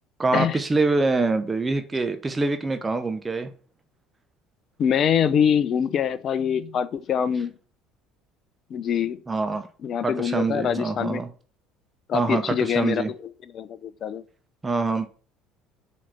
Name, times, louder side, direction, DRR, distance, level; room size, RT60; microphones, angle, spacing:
voice 1, 0.2-3.5 9.3-9.7 10.0-11.3 12.1-13.1 14.6-15.1, right 3 dB, 20° right, 0.8 m, -25 dB
voice 2, 4.8-7.5 8.7-9.2 9.8-11.2 12.1-14.2, left 8 dB, 45° left, 0.6 m, -24 dB
7.3 x 4.3 x 5.7 m
figure-of-eight pair, 60°, 0 cm